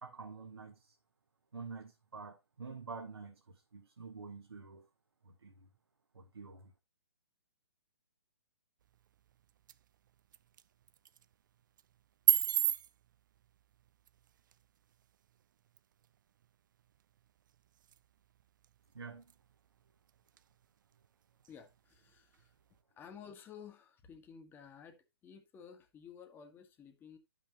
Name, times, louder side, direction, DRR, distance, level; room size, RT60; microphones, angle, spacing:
voice 1, 0.0-0.9 1.5-4.9 5.2-5.7 6.1-6.7 18.9-19.3, right 4 dB, 75° right, 1.5 m, -48 dB
sound 1, 8.8-22.8, right 10 dB, 50° right, 0.5 m, -40 dB
voice 2, 21.5-22.5 23.0-27.2, left 7 dB, 15° left, 1.5 m, -54 dB
11.5 x 6.2 x 2.9 m
figure-of-eight pair, 130°, 13 cm